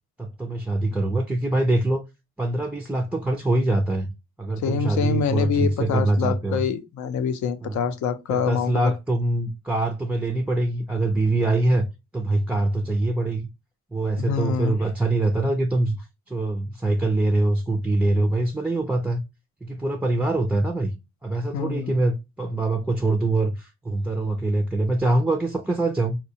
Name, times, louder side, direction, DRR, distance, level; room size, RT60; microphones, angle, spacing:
voice 1, 0.2-2.0 2.4-4.1 4.4-6.6 7.6-7.9 8.3-11.9 12.1-13.5 13.9-19.2 19.6-20.9 21.2-26.2, right 2 dB, 5° right, 0.4 m, -24 dB
voice 2, 4.6-8.9 14.2-14.8 21.5-22.0, left 7 dB, 70° left, 0.6 m, -26 dB
4.2 x 2.2 x 2.7 m
cardioid pair, 90°, 30 cm